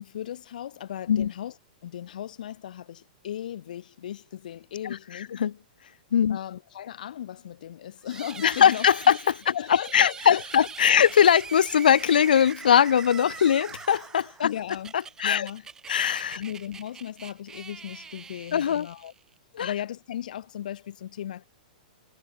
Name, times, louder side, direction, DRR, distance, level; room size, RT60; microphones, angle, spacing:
voice 1, 0.0-1.5 1.8-5.3 6.3-9.2 9.5-11.0 14.4-14.9 15.2-15.6 16.4-19.1 19.6-21.5, left 11 dB, 70° left, 2.2 m, -36 dB
voice 2, 4.8-5.5 6.1-6.4 8.4-9.5 9.9-14.5 14.9-15.5 15.9-16.4 18.5-18.9 19.5-19.7, left 8 dB, 90° left, 0.7 m, -21 dB
sound 1, 8.0-19.4, right 6 dB, 10° right, 3.7 m, -43 dB
hypercardioid pair, 150°, 5 cm